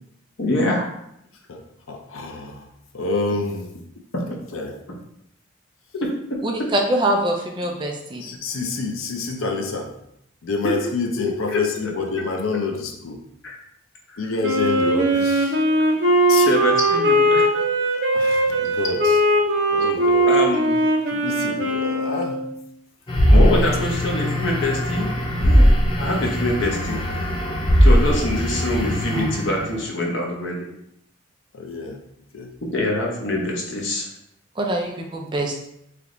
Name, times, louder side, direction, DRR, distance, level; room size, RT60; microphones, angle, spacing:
voice 1, 0.4-0.9 10.6-10.7 11.2-11.6 13.4-13.5 14.1-14.2 16.5-17.5 20.3-20.8 23.3-25.1 25.4-27.4 27.8-30.7 32.7-34.1, left 1 dB, 65° left, -1 dB, 0.9 m, -24 dB
voice 2, 1.5-2.7 2.9-3.7 4.5-4.8 8.2-9.9 10.4-13.2 14.2-15.6 16.3-16.5 18.1-19.2 19.7-20.3 21.1-22.4 23.6-23.8 31.5-32.0 32.3-32.5, left 3 dB, 80° left, 3 dB, 0.6 m, -28 dB
voice 3, 6.4-8.2 34.6-35.6, right 1 dB, 25° right, 1 dB, 0.4 m, -23 dB
Wind instrument woodwind instrument, 14.4-22.5, right 1 dB, 55° right, 0.7 m, -19 dB
sound 1, 23.1-29.8, equal, 25° left, 0.5 m, -19 dB
3.4 x 2.9 x 3.8 m, 0.77 s
head